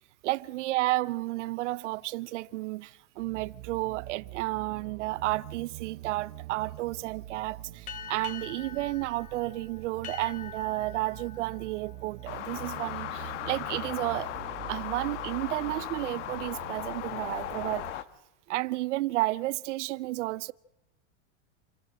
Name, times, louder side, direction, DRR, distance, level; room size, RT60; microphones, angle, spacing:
voice 1, 0.2-14.3 14.7-18.0 18.5-20.5, right 18 dB, 85° right, 0.7 m, -32 dB
sound 1, 3.2-17.9, right 17 dB, 50° right, 0.8 m, -45 dB
sound 2, 7.9-13.0, left 8 dB, 20° left, 1.2 m, -45 dB
sound 3, 12.3-18.0, left 12 dB, 85° left, 1.3 m, -37 dB
27.5 x 14.0 x 7.6 m
supercardioid pair, 165°, 35 cm